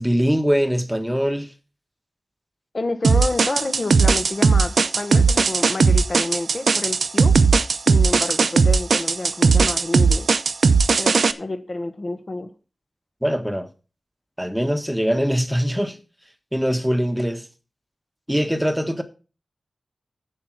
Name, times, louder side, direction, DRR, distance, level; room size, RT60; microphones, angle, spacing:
voice 1, 0.0-1.5 13.2-13.7 14.4-16.0 16.5-17.4 18.3-19.0, equal, 5° right, 1.4 m, -22 dB
voice 2, 2.7-7.3 7.9-10.3 11.0-12.5, left 2 dB, 40° left, 1.3 m, -29 dB
sound 1, 3.0-11.3, right 4 dB, 80° right, 0.6 m, -17 dB
8.6 x 7.4 x 6.1 m
wide cardioid pair, 100°, 0 cm